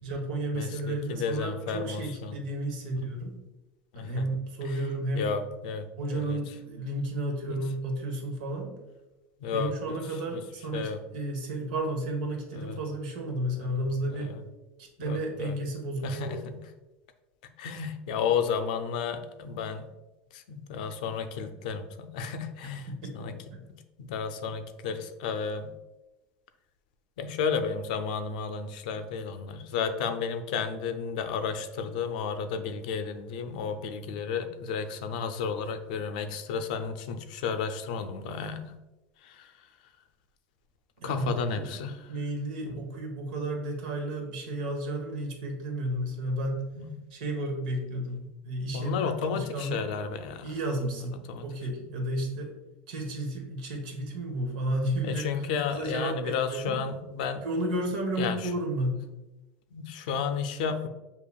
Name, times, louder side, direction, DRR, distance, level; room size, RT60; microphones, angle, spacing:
voice 1, 0.0-3.4 3.9-5.3 6.0-8.8 9.5-14.3 14.8-16.4 23.0-23.6 41.0-41.3 41.6-41.7 42.1-46.6 47.1-49.8 50.4-52.5 52.9-55.4 55.7-56.8 57.4-59.0, right 1 dB, 85° right, 2 dB, 1.1 m, -32 dB
voice 2, 0.5-2.4 2.8-3.3 3.9-4.3 4.6-4.8 5.1-6.4 7.5-7.6 9.4-10.0 10.3-10.4 10.7-11.0 12.5-12.8 13.6-13.8 14.0-14.4 15.0-15.5 16.0-16.6 17.6-19.8 20.3-22.9 23.1-23.3 24.0-25.7 27.2-38.7 39.2-39.7 41.0-42.1 42.6-42.8 46.7-46.9 48.7-50.5 51.3-51.5 51.7-51.8 55.0-57.5 58.2-58.5 59.7-60.9, left 6 dB, 85° left, 8 dB, 0.5 m, -32 dB
6.8 x 2.9 x 2.3 m, 1.0 s
cardioid pair, 170°, 4 cm